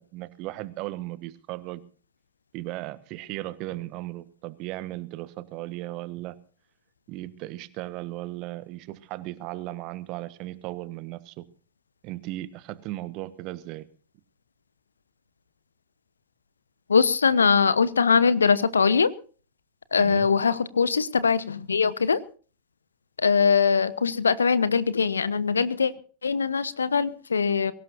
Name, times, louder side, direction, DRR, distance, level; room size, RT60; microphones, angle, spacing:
voice 1, 0.0-1.8 2.5-6.4 7.1-11.4 12.0-13.9 20.0-20.3, right 17 dB, 40° right, 15 dB, 1.4 m, -36 dB
voice 2, 16.9-19.1 19.9-22.2 23.2-25.9 26.2-27.7, left 5 dB, 75° left, 17 dB, 1.0 m, -22 dB
23.0 x 17.5 x 2.7 m, 0.41 s
figure-of-eight pair, 90°, 0 cm